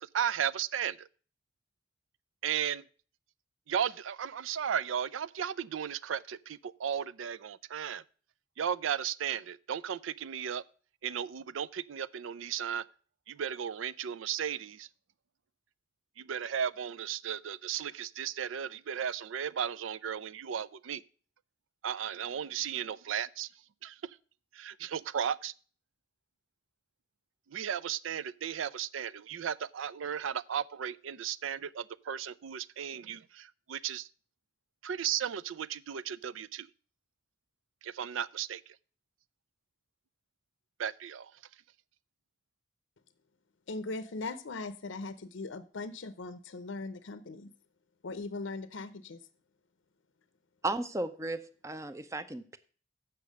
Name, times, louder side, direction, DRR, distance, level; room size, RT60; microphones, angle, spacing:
voice 1, 0.0-1.1 2.4-2.9 3.7-8.0 8.6-10.6 11.0-12.8 13.3-14.9 16.2-21.0 21.8-23.5 23.8-24.2 24.5-25.5 27.5-34.1 34.8-36.7 37.8-38.8 40.8-41.4, right 8 dB, 80° right, 0.4 m, -35 dB
voice 2, 43.7-47.5 48.0-49.2, left 3 dB, 75° left, 0.6 m, -39 dB
voice 3, 50.6-52.6, right 2 dB, 15° right, 0.6 m, -35 dB
8.3 x 5.8 x 6.2 m
head